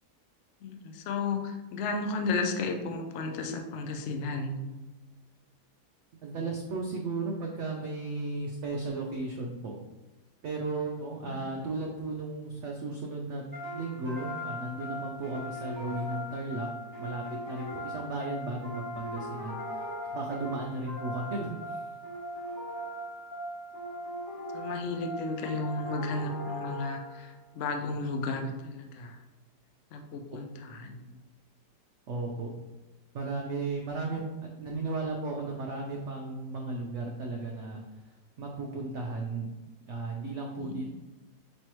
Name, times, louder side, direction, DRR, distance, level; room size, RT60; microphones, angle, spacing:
voice 1, 0.6-4.6 11.2-11.4 24.5-29.2 29.9-31.0 40.6-40.8, left 3 dB, 75° left, 4 dB, 0.7 m, -33 dB
voice 2, 6.2-9.7 10.4-16.7 17.0-21.8 30.3-30.4 32.1-32.5 33.1-37.8 38.4-39.5 39.9-40.9, right 3 dB, 80° right, 0 dB, 0.6 m, -35 dB
sound 1, 13.5-27.4, equal, 30° left, 1.5 m, -39 dB
5.3 x 3.1 x 2.9 m, 1.1 s
omnidirectional pair, 1.8 m